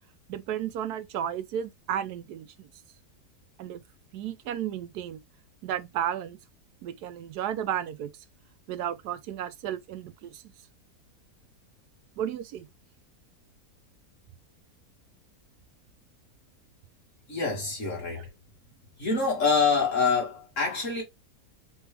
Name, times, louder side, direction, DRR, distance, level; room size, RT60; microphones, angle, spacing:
voice 1, 0.3-2.7 3.6-3.8 4.1-5.2 5.6-6.4 6.8-8.1 8.7-10.4 12.2-12.7, right 10 dB, 75° right, 1.1 m, -33 dB
voice 2, 17.3-18.3 19.0-21.0, left 5 dB, 50° left, 2.2 m, -26 dB
4.2 x 3.2 x 3.3 m
omnidirectional pair, 1.7 m